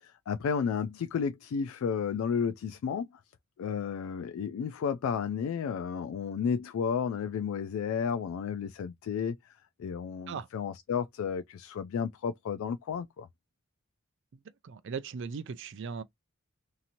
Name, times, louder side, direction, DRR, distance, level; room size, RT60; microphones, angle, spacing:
voice 1, 0.0-3.1 3.6-9.4 9.8-13.3, left 6 dB, 85° left, 0.3 m, -32 dB
voice 2, 14.6-16.0, right 5 dB, 60° right, 0.4 m, -38 dB
2.8 x 2.5 x 2.7 m
head